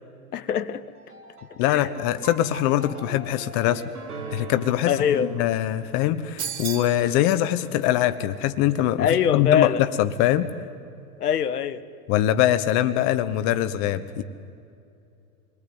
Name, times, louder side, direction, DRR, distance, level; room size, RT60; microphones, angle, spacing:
voice 1, 0.3-0.8 1.7-1.9 4.9-5.3 9.0-9.8 11.2-11.8, left 8 dB, 85° left, 15 dB, 1.3 m, -23 dB
sound 1, 0.9-9.1, right 4 dB, 85° right, 6.0 m, -43 dB
voice 2, 1.6-3.8 4.3-9.7 10.0-10.5 12.1-14.2, left 13 dB, 50° left, 11 dB, 1.2 m, -23 dB
sound 2, 6.4-7.0, right 8 dB, 70° right, 3.2 m, -31 dB
27.5 x 21.5 x 9.6 m, 2.6 s
hypercardioid pair, 100°, 45 cm